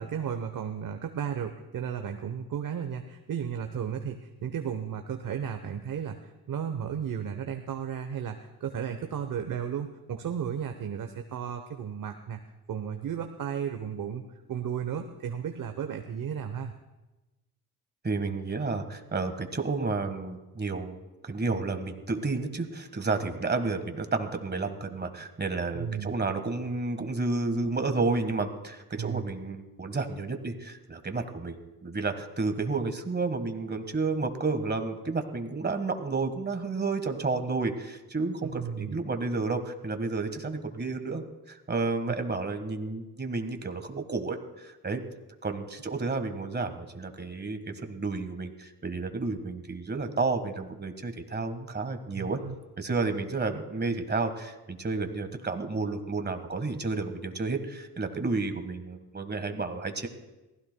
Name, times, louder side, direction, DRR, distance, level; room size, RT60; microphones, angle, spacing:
voice 1, 0.0-6.2 6.5-12.4 12.7-14.2 14.5-16.7 25.7-26.1 29.0-29.2 38.4-39.0 52.1-52.5, right 8 dB, 50° right, 6 dB, 0.9 m, -34 dB
voice 2, 18.0-45.0 45.4-52.4 52.8-60.1, right 3 dB, 25° right, 7 dB, 1.5 m, -31 dB
23.0 x 15.5 x 2.2 m, 1.0 s
supercardioid pair, 60°, 40 cm